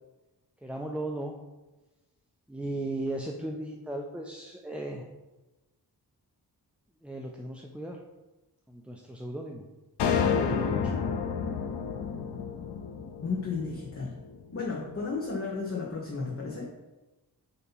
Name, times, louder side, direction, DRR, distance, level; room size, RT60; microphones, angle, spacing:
voice 1, 0.6-1.4 2.5-5.1 7.0-8.0 8.7-9.6 10.3-10.9, right 1 dB, 5° right, 0 dB, 0.3 m, -36 dB
sound 1, 10.0-14.4, left 6 dB, 90° left, 0.6 m, -30 dB
voice 2, 13.2-14.1 14.5-16.7, left 4 dB, 35° left, -3 dB, 1.0 m, -33 dB
7.9 x 2.8 x 5.6 m, 1.1 s
wide cardioid pair, 170°, 40 cm